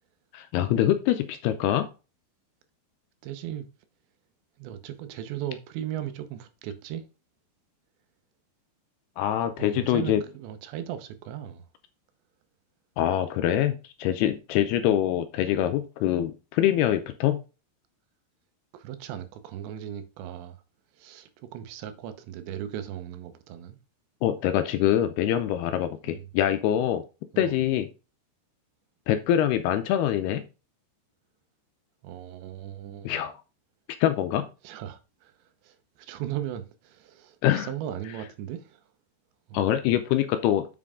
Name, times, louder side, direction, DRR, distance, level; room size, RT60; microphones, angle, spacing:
voice 1, 0.3-1.9 9.2-10.2 13.0-17.4 24.2-27.0 27.4-27.9 29.1-30.4 33.0-33.4 34.0-34.5 37.4-37.7 39.5-40.7, left 11 dB, 80° left, 2.4 m, -24 dB
voice 2, 3.2-3.7 4.6-7.1 9.6-11.7 14.8-14.9 18.7-20.6 20.9-23.8 26.0-26.3 27.3-27.6 32.0-33.2 34.6-38.8 39.5-39.6, right 11 dB, 80° right, 3.3 m, -37 dB
7.5 x 6.2 x 3.7 m
omnidirectional pair, 5.0 m